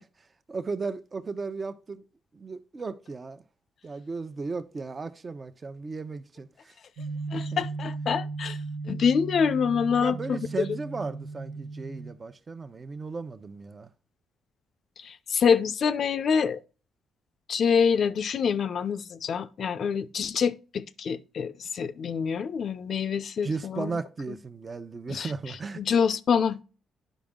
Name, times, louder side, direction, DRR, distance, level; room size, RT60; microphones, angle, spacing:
voice 1, 0.5-2.0 2.3-3.4 3.8-6.7 7.3-7.7 10.0-13.9 23.4-25.8, right 4 dB, 30° right, 0.9 m, -35 dB
sound 1, 7.0-12.1, right 3 dB, 85° right, 1.7 m, -36 dB
voice 2, 7.3-8.6 8.9-10.4 15.0-16.6 17.5-23.9 24.3-24.4 25.1-25.3 25.8-26.6, left 6 dB, 55° left, 0.7 m, -26 dB
10.0 x 5.3 x 3.7 m
cardioid pair, 90°, 0 cm